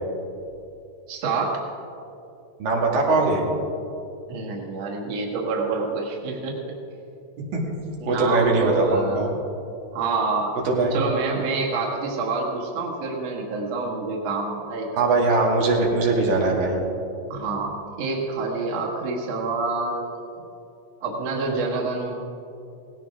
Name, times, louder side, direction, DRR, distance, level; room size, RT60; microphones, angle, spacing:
voice 1, 1.1-1.6 4.3-6.6 8.0-9.4 9.9-10.5 10.9-14.9 17.3-17.7 18.0-20.1 21.0-22.1, right 3 dB, 55° right, -2 dB, 2.8 m, -27 dB
voice 2, 2.6-3.4 7.5-7.6 8.1-9.3 10.7-11.0 15.0-16.7, right 3 dB, 85° right, -2 dB, 3.8 m, -21 dB
18.5 x 16.5 x 3.6 m, 2.7 s
omnidirectional pair, 3.9 m